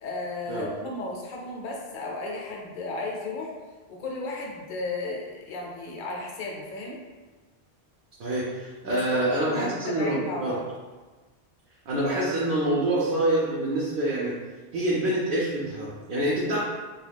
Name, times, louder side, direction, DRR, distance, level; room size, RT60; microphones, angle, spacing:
voice 1, 0.0-3.5 3.9-7.0 8.8-10.6, left 2 dB, 60° left, -1 dB, 0.7 m, -34 dB
voice 2, 8.2-10.5 11.9-14.3 14.7-16.6, right 1 dB, 60° right, -6 dB, 0.7 m, -26 dB
2.3 x 2.3 x 3.3 m, 1.3 s
omnidirectional pair, 1.1 m